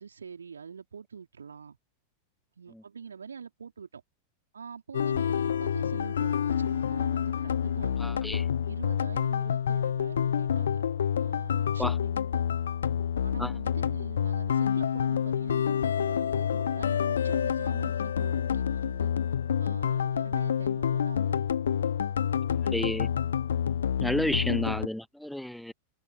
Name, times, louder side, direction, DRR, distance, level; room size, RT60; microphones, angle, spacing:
voice 1, 0.0-1.8 2.6-4.0 4.5-8.2 8.6-10.8 11.2-12.2 13.2-19.1 19.6-21.4 24.2-24.4, right 6 dB, 70° right, 4.5 m, -44 dB
sound 1, 4.9-24.9, left 8 dB, 65° left, 1.0 m, -28 dB
voice 2, 8.0-8.4 11.8-11.9 13.4-13.5 22.6-23.1 24.0-25.7, left 1 dB, ahead, 1.0 m, -31 dB
figure-of-eight pair, 90°, 0 cm